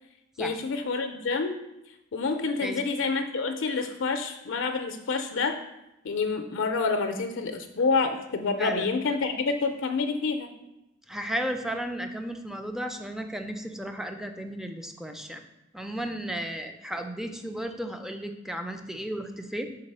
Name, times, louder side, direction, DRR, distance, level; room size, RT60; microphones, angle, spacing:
voice 1, 0.4-1.6 2.1-5.6 6.0-10.5, left 4 dB, 65° left, 6 dB, 0.5 m, -28 dB
voice 2, 11.1-15.4 15.7-19.7, equal, ahead, 5 dB, 0.4 m, -34 dB
4.9 x 3.9 x 5.4 m, 0.89 s
head